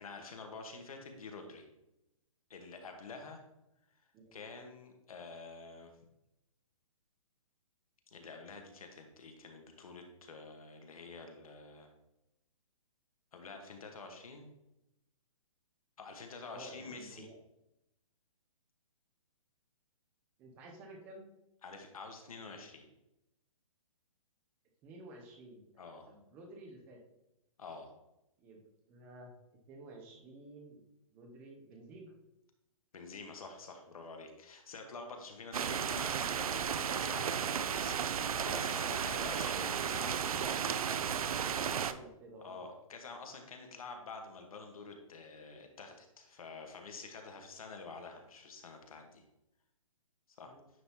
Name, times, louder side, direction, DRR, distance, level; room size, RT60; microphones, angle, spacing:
voice 1, 0.0-1.7 2.5-3.4 4.3-5.9 8.1-11.9 13.3-14.5 16.0-17.3 21.6-22.9 25.8-26.1 27.6-27.9 32.9-41.0 42.4-49.2 50.4-50.5, left 4 dB, 80° left, 4 dB, 1.3 m, -48 dB
voice 2, 16.5-17.3 20.4-21.3 24.8-25.7 26.1-27.0 28.4-29.4 29.7-30.8 31.1-32.1 38.3-39.3 39.9-40.8 41.4-42.6 50.5-50.6, right 2 dB, 10° right, 2 dB, 0.5 m, -52 dB
sound 1, 35.5-41.9, right 7 dB, 90° right, 0.4 m, -34 dB
9.3 x 3.7 x 2.8 m, 0.89 s
hypercardioid pair, 170°, 18 cm